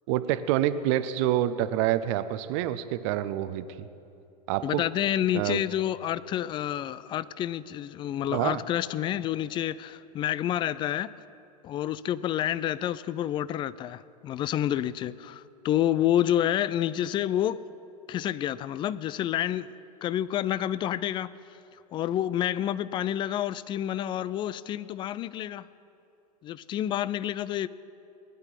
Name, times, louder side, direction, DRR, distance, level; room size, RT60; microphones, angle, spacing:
voice 1, 0.1-3.9 4.5-4.8 5.3-5.6 8.3-8.6, right 12 dB, 45° right, 0.7 m, -27 dB
voice 2, 4.6-11.1 11.6-17.6 18.1-19.7 20.0-21.3 21.9-25.6 26.4-27.7, left 11 dB, 25° left, 0.4 m, -29 dB
19.5 x 10.5 x 4.5 m
figure-of-eight pair, 90°, 21 cm